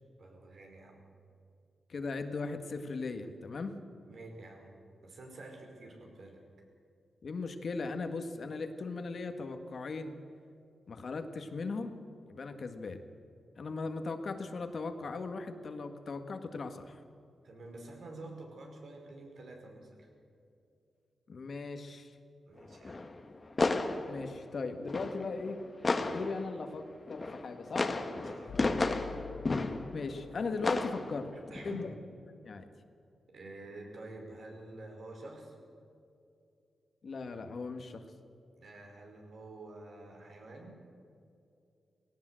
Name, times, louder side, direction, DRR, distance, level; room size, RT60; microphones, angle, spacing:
voice 1, 0.2-1.0 3.8-6.4 17.4-20.1 22.5-23.1 28.2-28.6 31.3-32.0 33.3-35.6 38.6-40.8, right 2 dB, 70° right, 1 dB, 5.2 m, -49 dB
voice 2, 1.9-3.7 7.2-10.1 10.9-12.0 12.3-13.0 13.6-17.0 21.3-22.2 24.1-25.6 26.0-27.9 29.9-31.3 31.6-31.9 32.4-32.7 37.0-38.1, left 3 dB, 55° left, 7 dB, 1.7 m, -38 dB
sound 1, 22.6-26.7 27.1-30.2 30.6-31.9, left 3 dB, 30° left, 1.4 m, -33 dB
sound 2, 28.5-32.5, left 7 dB, 70° left, 0.8 m, -49 dB
19.0 x 17.5 x 7.7 m, 2.6 s
wide cardioid pair, 105°, 0 cm